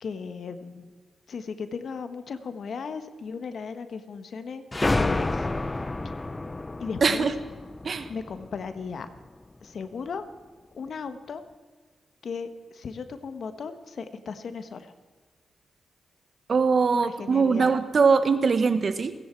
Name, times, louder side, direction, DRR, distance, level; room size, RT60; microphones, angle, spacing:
voice 1, 0.0-0.9 1.3-4.6 4.9-5.5 6.8-7.3 8.1-9.1 9.6-10.2 10.7-11.4 12.2-14.9 16.9-17.7, left 5 dB, 70° left, 10 dB, 1.4 m, -36 dB
sound 1, 4.7-9.2, left 2 dB, 25° left, 0.7 m, -29 dB
voice 2, 7.0-7.3 7.8-8.1 16.5-19.1, right 5 dB, 55° right, 11 dB, 1.2 m, -22 dB
29.0 x 10.5 x 4.6 m, 1.4 s
cardioid pair, 55°, 0 cm